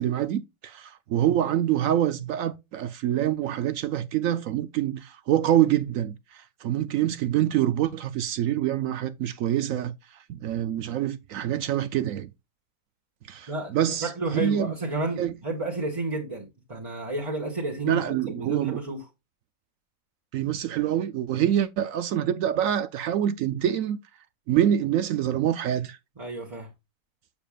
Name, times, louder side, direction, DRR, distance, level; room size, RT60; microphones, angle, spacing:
voice 1, 0.0-9.9 10.3-12.3 13.3-14.7 15.2-15.3 17.9-18.8 20.3-24.0 24.5-26.0, right 11 dB, 70° right, 0.9 m, -26 dB
voice 2, 14.0-19.0 26.2-26.7, right 2 dB, 20° right, 1.5 m, -31 dB
7.1 x 7.0 x 2.3 m
omnidirectional pair, 1.6 m